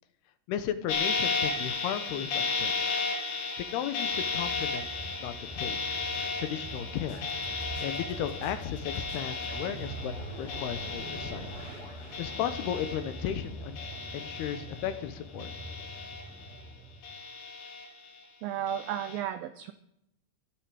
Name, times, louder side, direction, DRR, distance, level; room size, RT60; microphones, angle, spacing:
voice 1, 0.5-2.7 3.6-4.9 5.2-5.9 6.4-7.3 7.8-11.5 12.2-15.5, left 10 dB, 75° left, 11 dB, 2.8 m, -35 dB
sound 1, 0.9-13.5 13.8-15.0 15.4-16.6 17.0-18.1 18.7-19.2, left 4 dB, 50° left, 3.7 m, -34 dB
sound 2, 4.1-17.2, right 1 dB, ahead, 1.3 m, -44 dB
sound 3, 7.0-13.3, right 2 dB, 20° right, 5.2 m, -47 dB
voice 2, 18.4-19.7, right 10 dB, 85° right, 10 dB, 2.0 m, -33 dB
23.5 x 9.3 x 5.0 m, 0.79 s
omnidirectional pair, 4.9 m